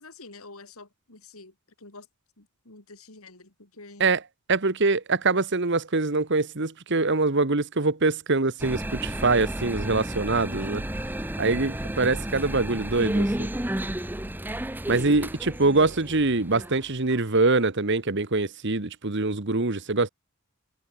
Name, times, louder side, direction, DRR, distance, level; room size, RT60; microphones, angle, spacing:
voice 1, 0.0-2.1 2.4-4.1, left 3 dB, 75° left, 3.7 m, -48 dB
voice 2, 4.5-10.8 11.4-13.5 14.9-20.1, right 3 dB, 50° right, 1.4 m, -24 dB
sound 1, 8.6-17.2, right 1 dB, 10° right, 0.8 m, -32 dB
head